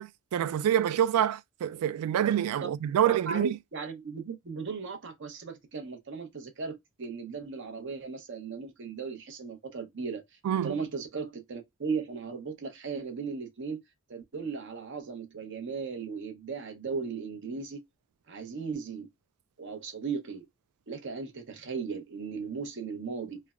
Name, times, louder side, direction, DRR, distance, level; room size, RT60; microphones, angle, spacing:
voice 1, 0.0-3.6 10.4-10.8, right 10 dB, 90° right, 0.3 m, -27 dB
voice 2, 3.0-10.2 10.6-13.8 14.1-17.8 18.3-19.1 19.6-20.5 20.9-23.4, right 5 dB, 55° right, 0.7 m, -37 dB
3.2 x 2.1 x 2.3 m
head